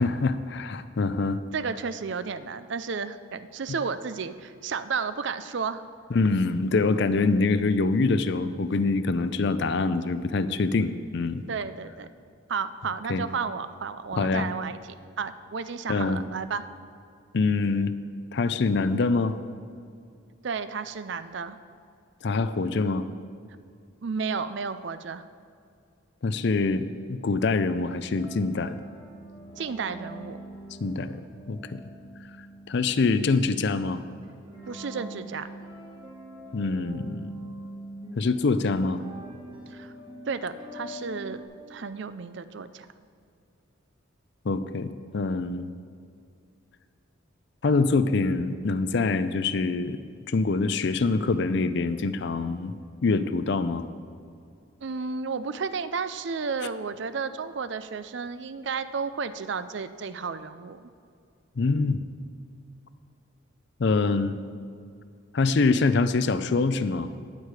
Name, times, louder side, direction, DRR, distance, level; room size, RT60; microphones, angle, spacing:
voice 1, 0.0-1.4 6.1-11.4 13.1-13.2 14.1-14.5 15.9-16.2 17.3-17.9 18.3-19.4 22.2-23.0 26.2-28.8 30.8-31.2 31.5-31.8 32.7-34.0 36.5-37.3 38.2-39.0 44.4-45.7 47.6-50.0 50.3-52.7 53.0-53.8 61.6-62.0 63.8-64.4 65.3-67.1, left 3 dB, 55° left, 12 dB, 0.5 m, -25 dB
voice 2, 1.5-5.8 11.5-12.1 12.5-14.8 15.2-16.6 20.4-21.6 24.0-25.2 29.6-30.4 34.7-35.5 39.7-39.9 40.3-41.4 41.7-42.9 54.8-60.9, right 5 dB, 55° right, 13 dB, 0.5 m, -32 dB
sound 1, 28.1-41.4, right 1 dB, 25° right, 1.8 m, -44 dB
18.0 x 6.6 x 4.8 m, 2.3 s
head